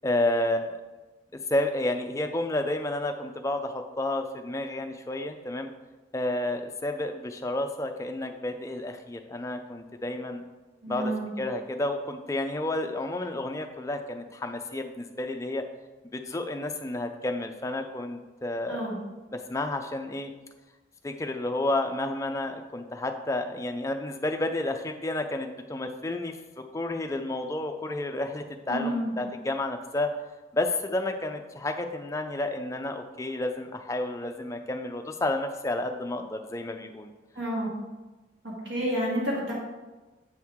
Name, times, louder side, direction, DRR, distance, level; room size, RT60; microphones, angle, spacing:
voice 1, 0.0-0.8 1.5-5.7 6.1-10.4 10.9-15.6 16.0-18.8 19.3-20.3 21.0-30.1 30.5-37.1, left 1 dB, 15° left, 5 dB, 0.4 m, -31 dB
voice 2, 10.8-11.3 18.7-19.0 28.7-29.1 37.4-37.7 38.4-39.5, right 1 dB, 65° right, -4 dB, 2.0 m, -30 dB
7.9 x 4.6 x 3.6 m, 1.2 s
head